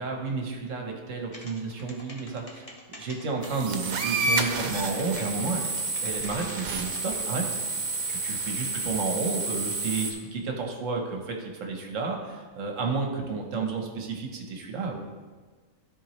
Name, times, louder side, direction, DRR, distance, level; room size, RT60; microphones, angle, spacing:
voice 1, 0.0-5.6 6.0-7.4 8.1-15.0, right 4 dB, 65° right, 2 dB, 1.3 m, -31 dB
sound 1, 1.3-7.1, left 1 dB, 30° left, 0.9 m, -45 dB
sound 2, 3.4-10.1, right 3 dB, 80° right, 1.2 m, -30 dB
13.5 x 4.4 x 3.1 m, 1.4 s
omnidirectional pair, 1.5 m